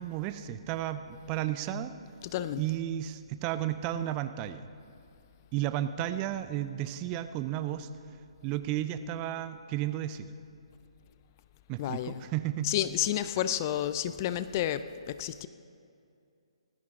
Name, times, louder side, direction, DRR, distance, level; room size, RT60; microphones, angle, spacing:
voice 1, 0.0-1.9 2.6-4.7 5.5-7.9 8.4-10.3 11.7-12.7, right 12 dB, 25° right, 12 dB, 0.5 m, -33 dB
voice 2, 2.2-2.6 11.8-12.2 12.6-15.5, left 12 dB, 30° left, 13 dB, 0.4 m, -31 dB
19.0 x 15.5 x 3.7 m, 2.5 s
figure-of-eight pair, 135°, 3 cm